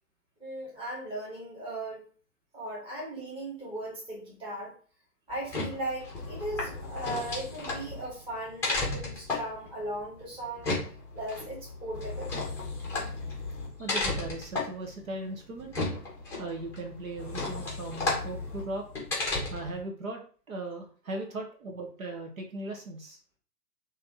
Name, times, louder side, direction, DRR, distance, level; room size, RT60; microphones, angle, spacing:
voice 1, 0.4-2.1 2.5-4.7 5.3-10.8 11.1-12.3, right 1 dB, 10° right, -4 dB, 1.3 m, -37 dB
sound 1, 5.3-19.8, left 3 dB, 5° left, 0.7 m, -34 dB
voice 2, 13.8-15.8 16.4-18.8 19.5-20.2 20.5-23.2, right 2 dB, 60° right, 2 dB, 1.0 m, -38 dB
3.2 x 2.8 x 3.7 m, 0.42 s
figure-of-eight pair, 120°, 48 cm